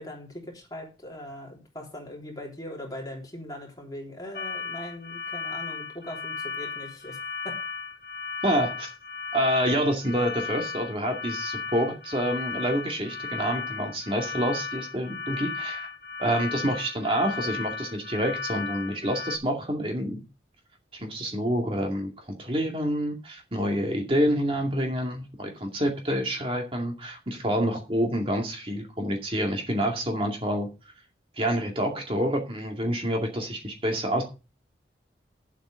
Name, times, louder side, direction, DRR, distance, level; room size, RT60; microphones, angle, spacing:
voice 1, 0.0-7.2 7.4-7.6, left 1 dB, 20° left, 0 dB, 3.3 m, -40 dB
sound 1, 4.3-19.4, left 4 dB, 65° left, 1.2 m, -35 dB
voice 2, 8.4-8.9 9.3-15.9 16.2-20.2 20.9-22.1 22.4-30.7 31.4-34.2, equal, 30° right, 1 dB, 2.3 m, -27 dB
9.8 x 8.2 x 5.1 m, 0.31 s
head